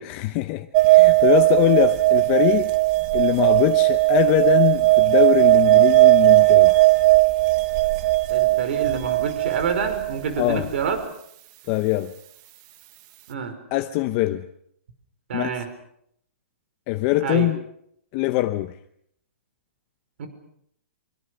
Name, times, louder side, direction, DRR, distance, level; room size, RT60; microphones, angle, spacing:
voice 1, 0.0-2.7 3.1-6.8 10.4-10.7 11.7-12.1 13.7-14.5 15.3-15.6 16.9-17.6 18.1-18.8, left 17 dB, 30° left, 0.9 m, -22 dB
sound 1, 0.7-11.0, right 21 dB, 30° right, 1.2 m, -17 dB
voice 2, 8.3-11.0 13.3-13.6 15.3-15.7 17.2-17.5 20.2-20.3, right 6 dB, 55° right, 5.6 m, -27 dB
25.0 x 24.0 x 6.6 m
hypercardioid pair, 160°, 7 cm